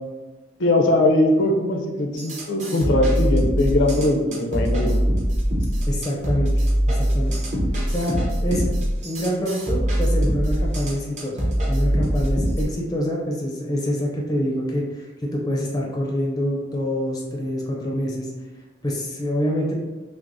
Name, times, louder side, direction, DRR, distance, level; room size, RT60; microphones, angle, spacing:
voice 1, 0.6-5.0 7.1-7.2, left 1 dB, 65° left, 1 dB, 0.6 m, -20 dB
sound 1, 2.2-12.6, equal, 35° right, 0.8 m, -22 dB
voice 2, 5.9-6.5 6.9-7.4 7.9-8.7 9.0-11.4 11.7-18.3 18.8-19.7, equal, 20° left, -2 dB, 0.5 m, -26 dB
5.9 x 2.0 x 2.6 m, 1.2 s
head